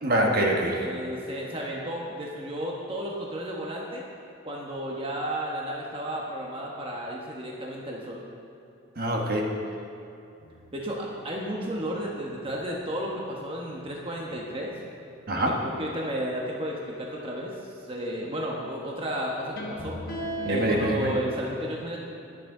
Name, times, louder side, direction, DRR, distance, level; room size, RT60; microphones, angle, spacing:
voice 1, 0.0-0.9 9.0-9.5 15.3-15.6 20.4-21.1, right 1 dB, 45° right, 0 dB, 1.3 m, -25 dB
voice 2, 0.8-4.0 4.4-8.2 10.7-14.7 15.4-20.0 20.4-22.0, equal, 25° right, -2 dB, 1.1 m, -33 dB
sound 1, 10.4-17.3 19.4-20.9, equal, 45° left, 1.4 m, -40 dB
20.5 x 7.7 x 3.8 m, 2.8 s
head